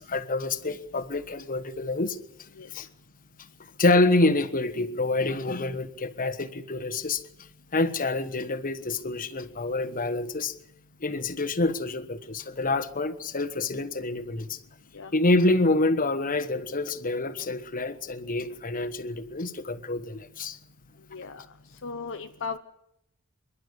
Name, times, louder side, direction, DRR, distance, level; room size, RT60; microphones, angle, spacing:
voice 1, 0.0-2.2 2.7-2.9 3.8-7.2 7.7-10.5 11.0-14.6 15.1-20.6, left 2 dB, 40° left, 1.3 m, -27 dB
voice 2, 21.1-21.4 21.8-22.6, left 4 dB, 60° left, 0.9 m, -36 dB
27.5 x 11.5 x 9.7 m
head